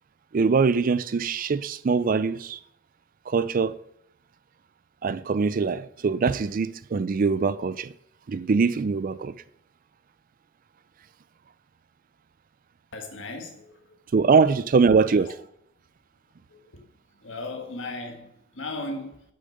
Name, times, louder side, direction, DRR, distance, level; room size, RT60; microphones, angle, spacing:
voice 1, 0.3-2.6 3.3-3.7 5.0-7.9 8.3-9.3 14.1-15.4, right 5 dB, 45° right, 0.4 m, -23 dB
voice 2, 12.9-14.0 15.1-15.3 16.5-16.8 17.2-19.2, left 2 dB, 80° left, 1.7 m, -37 dB
7.9 x 6.6 x 5.2 m
head